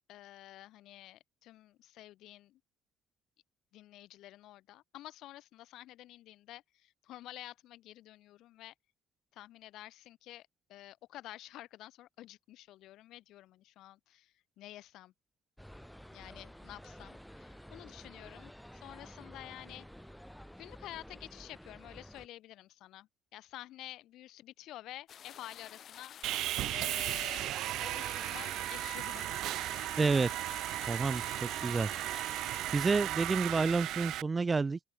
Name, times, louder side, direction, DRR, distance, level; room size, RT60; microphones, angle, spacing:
voice 1, 0.1-2.6 3.7-8.7 9.3-15.1 16.1-19.9 20.6-27.5 27.8-29.2, left 15 dB, 60° left, 5.7 m, -50 dB
Borough - Market, 15.6-22.3, equal, ahead, 4.6 m, -51 dB
sound 1, 25.1-32.7, left 9 dB, 45° left, 4.3 m, -51 dB
Sawing, 26.2-34.2, right 15 dB, 60° right, 1.0 m, -36 dB
voice 2, 30.0-30.3 30.9-32.4 32.7-34.8, right 4 dB, 20° right, 2.4 m, -30 dB
open air
cardioid pair, 130°, 0 cm